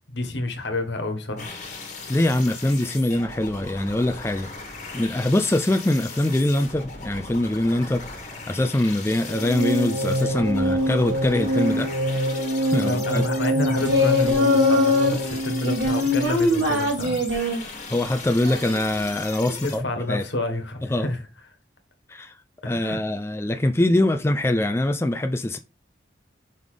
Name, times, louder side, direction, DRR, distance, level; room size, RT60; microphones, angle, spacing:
voice 1, 0.1-1.5 12.8-17.2 19.5-21.2 22.6-23.0, left 2 dB, 75° left, 1.4 m, -29 dB
sound 1, 1.4-19.8, left 4 dB, 40° left, 1.6 m, -38 dB
voice 2, 2.1-4.5 4.9-8.0 8.5-11.9 12.6-13.2 17.9-20.2 20.9-21.1 22.1-22.3 22.6-25.6, left 1 dB, 15° left, 0.4 m, -23 dB
sound 2, 9.2-16.4, equal, 50° right, 1.5 m, -25 dB
Singing, 13.8-15.1 15.6-17.6 18.4-19.0, left 2 dB, 75° right, 1.9 m, -22 dB
5.3 x 3.9 x 4.9 m
head